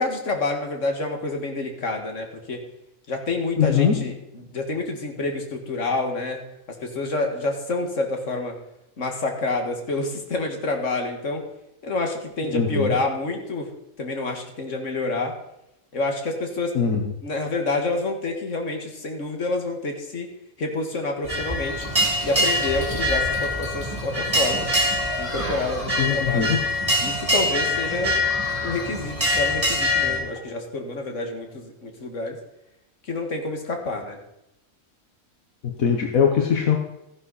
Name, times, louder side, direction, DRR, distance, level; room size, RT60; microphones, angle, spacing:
voice 1, 0.0-2.6 3.1-8.6 9.0-11.4 11.8-13.7 14.0-15.3 15.9-16.7 17.2-20.3 20.6-21.9 22.2-24.7 25.2-26.5 27.0-28.2 28.6-32.4 33.0-34.2, left 2 dB, 60° left, 3 dB, 2.3 m, -28 dB
voice 2, 3.6-4.0 12.5-12.9 16.7-17.1 26.0-26.6 35.6-36.8, left 7 dB, 85° left, 3 dB, 1.6 m, -21 dB
sound 1, 21.2-30.2, left 1 dB, 25° right, 3.1 m, -24 dB
14.5 x 10.5 x 4.2 m, 0.85 s
omnidirectional pair, 1.4 m